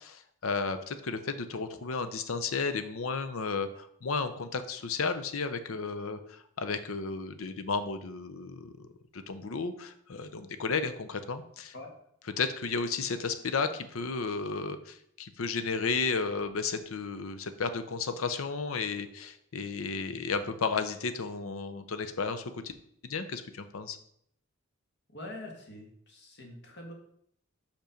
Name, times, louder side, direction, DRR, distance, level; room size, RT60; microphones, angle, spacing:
voice 1, 0.4-8.9 9.1-11.7 12.4-22.7 23.0-24.0, left 4 dB, 75° left, 10 dB, 0.7 m, -33 dB
voice 2, 25.1-26.9, left 1 dB, 55° left, 1 dB, 1.7 m, -44 dB
5.3 x 5.2 x 5.1 m, 0.70 s
head